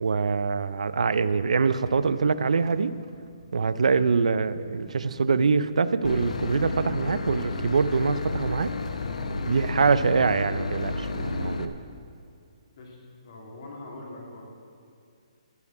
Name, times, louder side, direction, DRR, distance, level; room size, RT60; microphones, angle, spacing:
voice 1, 0.0-2.9 3.5-8.7 9.5-11.7, right 5 dB, 85° right, 14 dB, 0.5 m, -24 dB
Car, 1.7-8.2, right 4 dB, 50° right, 0.9 m, -47 dB
Boat Water vehicle / Engine, 6.0-11.7, left 3 dB, 85° left, 1.0 m, -31 dB
voice 2, 13.2-14.5, left 2 dB, 45° left, -1 dB, 2.8 m, -42 dB
14.0 x 5.4 x 8.3 m, 2.4 s
hypercardioid pair, 170°, 4 cm